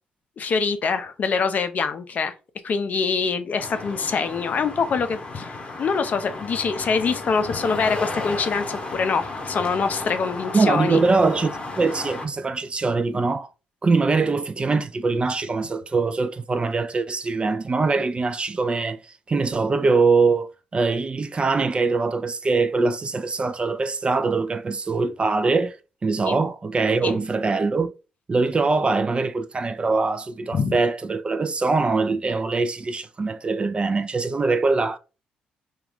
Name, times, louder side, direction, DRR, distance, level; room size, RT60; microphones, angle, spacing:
voice 1, 0.4-2.3 2.6-11.0 26.2-26.4 27.0-27.2 30.5-30.8, left 5 dB, 50° left, 0.5 m, -24 dB
sound 1, 3.6-12.3, left 2 dB, 35° left, 0.8 m, -33 dB
voice 2, 10.5-13.5 13.8-25.8 26.0-27.9 28.3-35.0, right 3 dB, 30° right, 0.3 m, -23 dB
2.3 x 2.3 x 3.4 m
hypercardioid pair, 45°, 3 cm